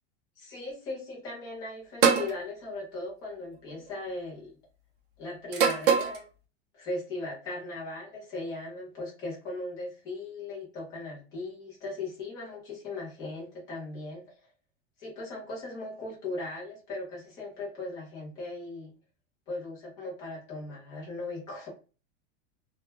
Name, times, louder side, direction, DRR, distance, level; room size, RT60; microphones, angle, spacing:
voice 1, 0.4-4.6 5.2-6.2 6.7-14.2 15.0-18.9 19.5-21.7, left 2 dB, 10° left, -3 dB, 0.3 m, -38 dB
sound 1, 2.0-2.3 3.5-3.9 5.5-6.2, right 6 dB, 45° right, 0.5 m, -23 dB
2.2 x 2.0 x 2.9 m, 0.33 s
supercardioid pair, 180°, 36 cm